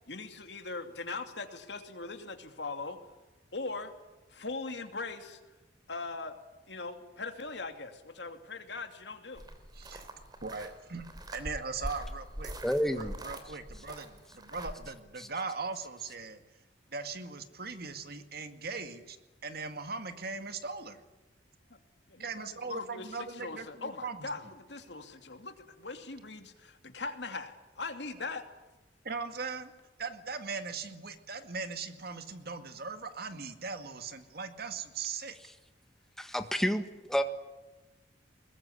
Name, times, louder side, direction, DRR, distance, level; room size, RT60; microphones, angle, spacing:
voice 1, 0.1-3.0 3.5-3.9 4.3-5.4 5.9-6.3 6.7-9.4 21.7-21.8 22.1-28.4, left 3 dB, 70° left, 6 dB, 2.8 m, -40 dB
sound 1, 9.4-14.7, right 1 dB, 25° right, 3.2 m, -43 dB
voice 2, 9.7-10.1 10.4-12.6 13.0-16.4 16.9-19.2 19.4-21.0 22.2-24.3 29.0-29.7 30.0-35.4, right 4 dB, 60° right, 8 dB, 2.1 m, -39 dB
voice 3, 12.6-13.1 15.2-15.3 36.2-36.8 37.1-37.2, equal, ahead, 7 dB, 1.7 m, -29 dB
22.0 x 20.0 x 9.9 m, 1.1 s
head